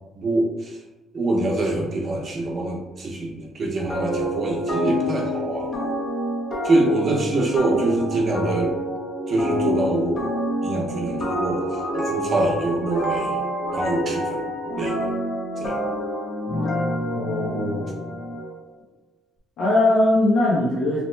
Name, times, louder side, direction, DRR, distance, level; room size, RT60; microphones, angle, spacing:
voice 1, 0.2-0.8 1.1-5.8 6.6-8.7 9.3-10.2 10.6-13.4 13.7-14.4 14.8-15.1 15.6-15.8, right 2 dB, 40° right, 0 dB, 0.6 m, -24 dB
sound 1, 3.9-18.5, equal, 40° left, 0.6 m, -27 dB
voice 2, 17.1-18.0 19.6-21.0, left 1 dB, 75° left, -7 dB, 0.8 m, -20 dB
2.9 x 2.1 x 3.1 m, 1.1 s
cardioid pair, 130°, 0 cm